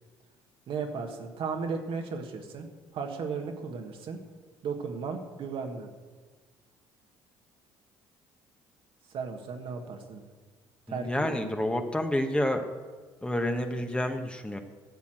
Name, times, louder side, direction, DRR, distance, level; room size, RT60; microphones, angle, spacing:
voice 1, 0.7-2.7 2.9-4.2 4.6-5.9 9.1-10.2 10.9-11.4, right 5 dB, 60° right, 4 dB, 1.6 m, -35 dB
voice 2, 10.9-12.7 13.2-14.6, left 1 dB, 10° left, 5 dB, 1.3 m, -29 dB
13.0 x 7.2 x 7.8 m, 1.4 s
hypercardioid pair, 65°, 10 cm